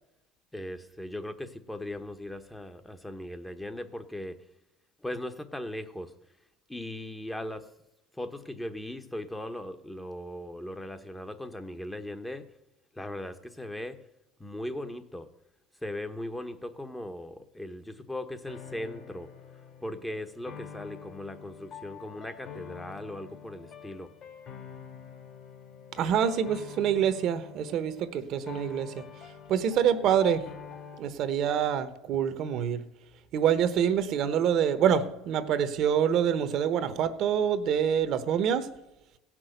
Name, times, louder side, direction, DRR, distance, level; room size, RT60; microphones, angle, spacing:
voice 1, 0.5-4.4 5.0-6.1 6.7-7.7 8.2-12.4 13.0-14.0 14.4-15.3 15.8-19.3 19.8-24.1, left 1 dB, 10° left, 8 dB, 1.0 m, -38 dB
sound 1, 18.5-31.0, left 7 dB, 50° left, 2.6 m, -46 dB
voice 2, 26.0-29.0 29.5-30.4 31.0-32.8 33.3-38.7, right 8 dB, 60° right, 12 dB, 1.1 m, -26 dB
16.5 x 6.2 x 8.1 m, 0.93 s
supercardioid pair, 100°, 0 cm